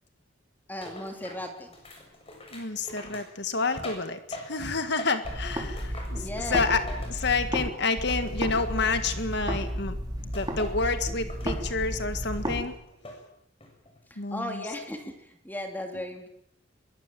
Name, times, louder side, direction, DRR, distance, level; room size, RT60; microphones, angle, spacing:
voice 1, 0.7-1.7 5.9-6.8 14.1-16.3, left 1 dB, 10° left, 4 dB, 2.9 m, -37 dB
sound 1, 0.8-4.7 5.0-7.8 8.1-9.7 10.3-10.9 11.3-11.9 12.3-13.2 13.6-14.0, left 1 dB, 30° left, 7.3 m, -44 dB
voice 2, 2.5-6.2 6.5-6.8 7.1-10.0 10.3-12.7 14.2-14.5, left 4 dB, 60° left, 9 dB, 1.8 m, -29 dB
sound 2, 5.2-7.7 8.0-12.6, equal, 20° right, 4.6 m, -33 dB
23.0 x 22.0 x 7.7 m, 0.75 s
head